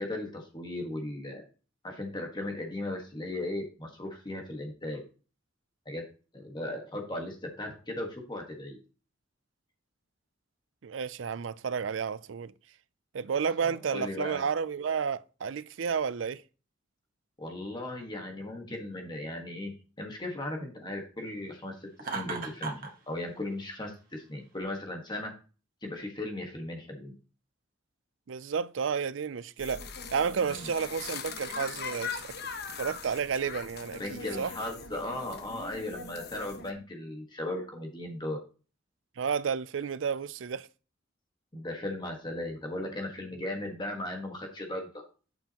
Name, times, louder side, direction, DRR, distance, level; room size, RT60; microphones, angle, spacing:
voice 1, 0.0-1.4 1.8-5.0 5.8-6.0 6.3-8.8 13.6-14.5 17.4-25.3 25.8-27.1 30.4-30.7 34.0-38.4 41.5-44.9, left 1 dB, 25° left, 1.5 m, -37 dB
voice 2, 10.8-12.5 13.1-16.4 28.3-29.9 30.1-32.4 32.8-34.5 39.2-40.7, right 6 dB, 70° right, 0.4 m, -31 dB
Laughter, 22.0-22.9, right 4 dB, 45° right, 1.6 m, -35 dB
sound 1, 29.6-36.7, left 5 dB, 55° left, 1.0 m, -40 dB
9.1 x 7.1 x 3.0 m
head